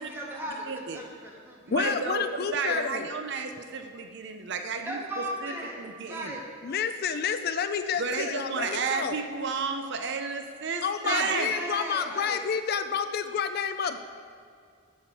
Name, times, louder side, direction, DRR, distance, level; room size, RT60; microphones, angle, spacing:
voice 1, 0.0-1.7 4.8-6.4 11.0-12.4, right 1 dB, 10° right, -3 dB, 1.5 m, -37 dB
voice 2, 0.7-1.0 1.7-2.2 2.5-5.0 5.4-5.5 5.8-6.3 8.0-11.5, right 5 dB, 55° right, 6 dB, 0.6 m, -32 dB
voice 3, 1.7-3.1 6.6-9.2 10.8-14.0, left 6 dB, 50° left, 9 dB, 0.4 m, -29 dB
9.9 x 6.4 x 4.8 m, 2.3 s
head